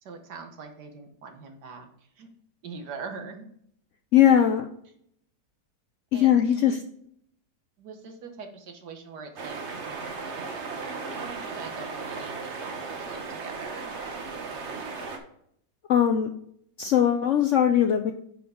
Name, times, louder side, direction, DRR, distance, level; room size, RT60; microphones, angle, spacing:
voice 1, 0.0-2.3 2.6-3.5 6.1-6.7 7.8-9.6 9.8-10.4 11.1-13.9, right 4 dB, 80° right, 5 dB, 1.7 m, -43 dB
voice 2, 4.1-4.7 6.1-6.8 15.9-16.3 16.8-18.1, left 10 dB, 70° left, 7 dB, 0.7 m, -20 dB
sound 1, 9.4-15.2, right 4 dB, 45° right, 1.2 m, -36 dB
9.5 x 5.0 x 3.6 m, 0.69 s
omnidirectional pair, 1.8 m